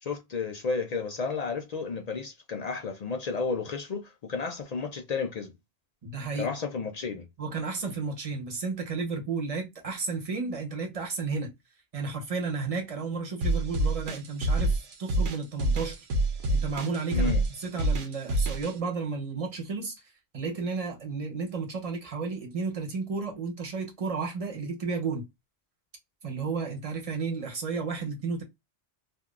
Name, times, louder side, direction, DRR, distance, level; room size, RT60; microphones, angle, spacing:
voice 1, 0.0-5.5 6.4-7.3 17.1-17.4, left 4 dB, 60° left, 0.4 m, -32 dB
voice 2, 6.0-6.5 7.4-11.5 11.9-16.0 16.5-25.2 26.2-28.4, right 4 dB, 35° right, 0.9 m, -33 dB
sound 1, 13.4-18.7, right 2 dB, 80° right, 1.1 m, -26 dB
3.5 x 2.3 x 2.3 m
omnidirectional pair, 1.2 m